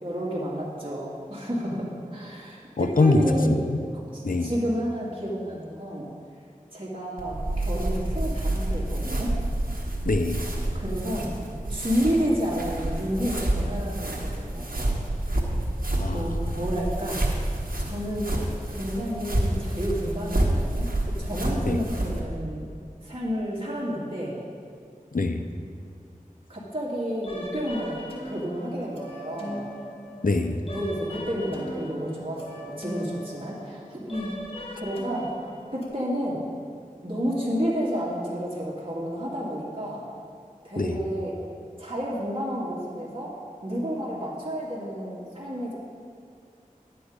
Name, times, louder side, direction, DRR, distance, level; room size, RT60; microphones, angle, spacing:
voice 1, 0.0-3.6 3.9-6.1 6.7-9.4 10.7-11.3 11.7-15.0 16.1-17.2 17.8-18.4 18.7-22.6 23.0-24.3 26.5-29.7 30.7-34.3 34.8-35.4 35.7-36.4 37.0-40.0 40.6-41.4 41.8-43.3 43.6-45.7, equal, 40° right, -7 dB, 2.3 m, -30 dB
voice 2, 2.8-3.2 3.7-3.8 4.2-4.5 10.1-10.4 15.9-16.3 21.7-21.8 25.1-25.4 30.2-30.6 40.8-41.0, left 3 dB, 75° left, 7 dB, 0.7 m, -23 dB
sound 1, 7.2-22.2, right 1 dB, 80° right, 1.4 m, -28 dB
sound 2, 27.2-35.9, equal, 40° left, 1.9 m, -39 dB
11.0 x 8.4 x 5.1 m, 2.2 s
wide cardioid pair, 40°, 14 cm